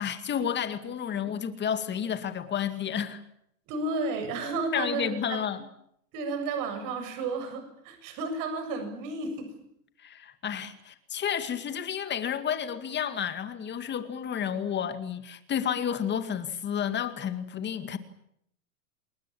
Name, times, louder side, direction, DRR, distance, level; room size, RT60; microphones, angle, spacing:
voice 1, 0.0-3.2 4.7-5.6 10.0-18.0, left 8 dB, 25° left, 2.2 m, -31 dB
voice 2, 3.7-5.4 6.1-9.5, right 3 dB, 45° right, 7.3 m, -32 dB
29.0 x 21.0 x 8.7 m
hypercardioid pair, 125°, 46 cm